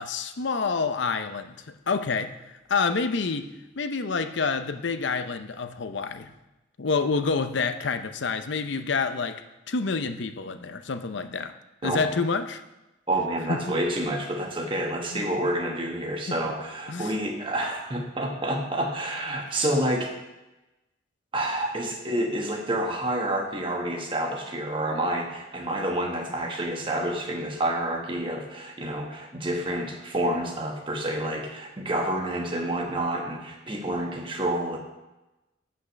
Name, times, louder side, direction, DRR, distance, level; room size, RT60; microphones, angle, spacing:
voice 1, 0.0-2.3 2.7-3.5 3.8-6.3 6.8-9.4 9.7-11.5 11.8-12.6 13.5-13.6 15.1-15.2 16.3-16.4 16.9-17.1, left 4 dB, 70° left, 8 dB, 0.7 m, -28 dB
voice 2, 11.8-12.1 13.1-20.2 21.3-34.8, right 1 dB, 25° right, 2 dB, 1.3 m, -28 dB
8.5 x 5.6 x 6.3 m, 1.0 s
head